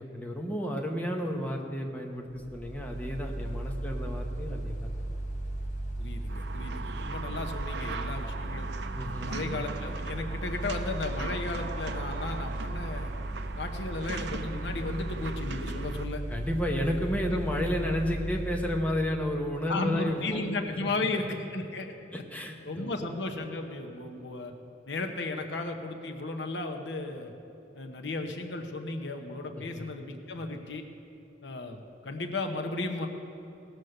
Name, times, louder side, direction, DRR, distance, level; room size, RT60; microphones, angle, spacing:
voice 1, 0.0-4.8 9.0-9.3 16.3-20.4 21.0-21.3 22.1-22.9 29.5-29.9, left 1 dB, 10° left, 0 dB, 1.0 m, -32 dB
Mechanical fan, 2.3-19.2, right 1 dB, 40° left, 1.0 m, -36 dB
voice 2, 6.0-8.7 9.2-13.1 13.6-16.2 19.7-21.9 22.7-24.5 24.9-27.3 27.7-30.8 31.4-33.1, left 2 dB, 65° left, 4 dB, 0.9 m, -35 dB
sound 1, 6.3-16.1, right 4 dB, 65° right, 0.6 m, -40 dB
18.0 x 6.3 x 6.5 m, 2.9 s
head